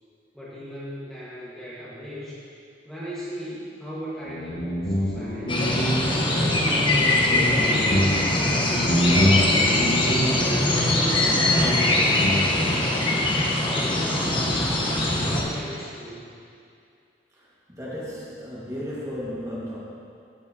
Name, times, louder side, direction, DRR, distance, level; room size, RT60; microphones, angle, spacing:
voice 1, 0.3-2.4 2.8-5.9 6.3-8.1 8.7-9.8 10.3-13.1 13.6-14.7 15.2-16.3, equal, ahead, -10 dB, 1.6 m, -37 dB
Guitar, 4.3-12.7, equal, 65° left, 1.7 m, -26 dB
sound 1, 5.5-15.4, left 1 dB, 30° left, 1.1 m, -22 dB
voice 2, 17.7-19.8, equal, 20° right, -7 dB, 1.9 m, -34 dB
15.5 x 7.6 x 2.9 m, 2.5 s
head